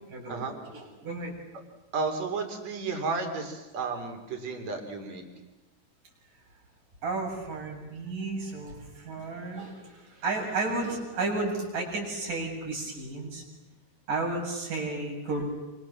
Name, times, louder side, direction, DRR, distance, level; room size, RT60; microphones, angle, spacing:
voice 1, 0.1-1.3 7.0-13.4 14.1-15.5, right 3 dB, 75° right, -1 dB, 9.2 m, -33 dB
voice 2, 1.9-5.2, right 4 dB, 55° right, 5 dB, 4.9 m, -32 dB
28.0 x 27.5 x 7.4 m, 1.1 s
omnidirectional pair, 3.8 m